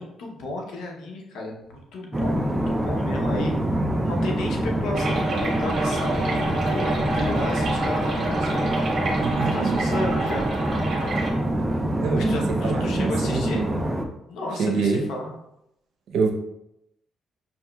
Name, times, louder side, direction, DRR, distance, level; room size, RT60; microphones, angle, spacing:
voice 1, 0.0-3.6 3.9-10.5 12.1-13.6 14.3-15.3, left 2 dB, 80° left, 0 dB, 0.8 m, -33 dB
sound 1, 2.1-14.1, right 1 dB, 15° right, 0.4 m, -25 dB
sound 2, 4.9-11.3, right 2 dB, 50° right, 1.0 m, -28 dB
voice 2, 9.1-9.8 12.0-13.8 14.6-15.0 16.1-16.3, right 4 dB, 80° right, 2 dB, 0.7 m, -26 dB
5.4 x 2.9 x 2.3 m, 0.83 s
cardioid pair, 105°, 0 cm